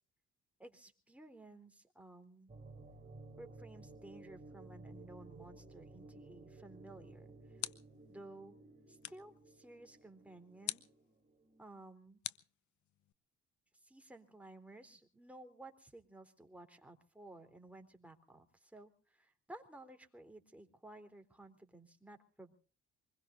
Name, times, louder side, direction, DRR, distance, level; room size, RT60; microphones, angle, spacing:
voice 1, 0.6-2.5 3.4-7.6 8.1-8.6 8.9-10.8 11.6-12.2 13.8-22.5, right 2 dB, 5° right, 4 dB, 3.6 m, -55 dB
sound 1, 2.5-11.6, right 2 dB, 30° right, 3.4 m, -56 dB
sound 2, 6.9-8.1 9.0-9.4 10.7-11.0 12.2-13.1, left 13 dB, 70° left, 0.9 m, -45 dB
25.0 x 21.0 x 2.6 m, 0.39 s
cardioid pair, 90°, 30 cm